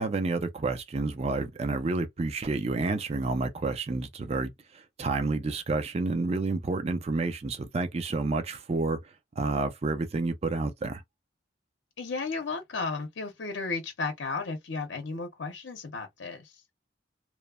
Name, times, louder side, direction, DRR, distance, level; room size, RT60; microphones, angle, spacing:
voice 1, 0.0-9.0 9.4-11.0, right 3 dB, 35° right, 0.4 m, -29 dB
voice 2, 12.0-16.6, left 4 dB, 80° left, 0.7 m, -34 dB
3.0 x 2.1 x 2.2 m
head